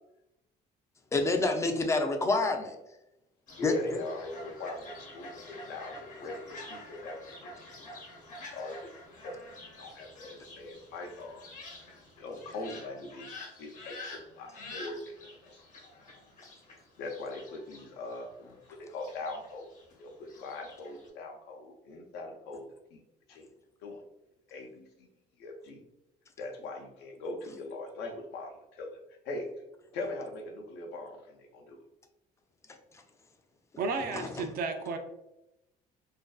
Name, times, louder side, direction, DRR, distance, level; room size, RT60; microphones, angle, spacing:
voice 1, 1.1-2.8 3.6-4.0 34.1-34.3, left 3 dB, 15° left, 5 dB, 0.3 m, -27 dB
Fowl, 3.5-21.1, left 2 dB, 50° left, 0.8 m, -48 dB
voice 2, 3.6-8.2 8.5-8.9 9.2-9.4 9.8-11.4 12.2-15.1 15.4-15.6 17.0-19.7 20.0-22.6 22.9-23.0 23.3-23.5 23.8-24.0 24.5-25.1 25.4-25.8 26.4-28.9 29.2-29.5 29.9-31.8, left 2 dB, 85° left, 2 dB, 0.5 m, -41 dB
voice 3, 33.8-35.0, right 4 dB, 60° right, 5 dB, 0.4 m, -33 dB
2.5 x 2.2 x 2.3 m, 0.89 s
cardioid pair, 110°, 17 cm